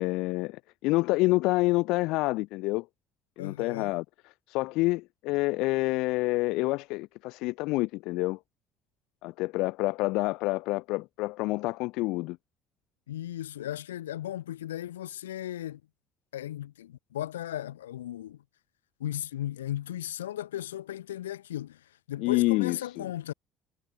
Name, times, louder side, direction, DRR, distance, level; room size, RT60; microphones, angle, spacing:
voice 1, 0.0-2.9 3.4-4.0 4.5-8.4 9.2-12.4 22.2-23.1, left 22 dB, 70° left, 1.1 m, -28 dB
voice 2, 3.4-4.0 13.1-15.8 16.3-18.4 19.0-23.3, left 12 dB, 90° left, 1.7 m, -36 dB
hypercardioid pair, 60°, 0 cm